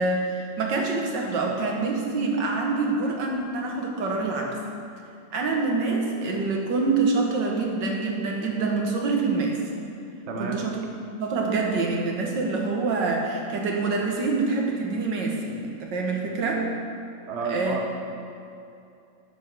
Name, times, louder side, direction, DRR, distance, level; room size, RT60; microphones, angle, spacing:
voice 1, 0.0-4.6 5.3-9.6 10.4-10.8 11.2-16.7 17.4-17.8, right 3 dB, 85° right, 0 dB, 1.9 m, -26 dB
voice 2, 10.3-10.6 17.3-18.0, right 4 dB, 45° right, 1 dB, 1.1 m, -30 dB
11.0 x 5.5 x 6.1 m, 2.6 s
omnidirectional pair, 1.9 m